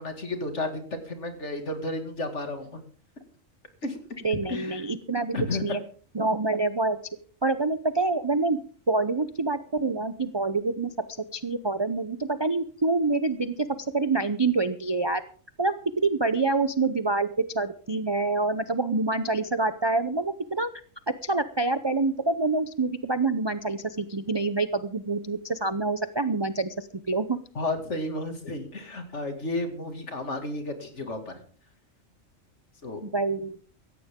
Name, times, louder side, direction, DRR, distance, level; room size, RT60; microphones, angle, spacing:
voice 1, 0.0-2.8 3.8-4.0 4.5-4.8 5.3-5.8 27.5-31.3 32.8-33.0, left 2 dB, 60° left, 6 dB, 2.6 m, -32 dB
voice 2, 4.2-5.8 6.1-7.0 7.4-8.6 8.9-10.9 11.3-13.7 13.9-15.2 15.6-20.7 21.2-27.4 33.0-33.6, right 3 dB, 30° right, 11 dB, 0.5 m, -26 dB
17.0 x 14.5 x 3.7 m, 0.43 s
omnidirectional pair, 1.4 m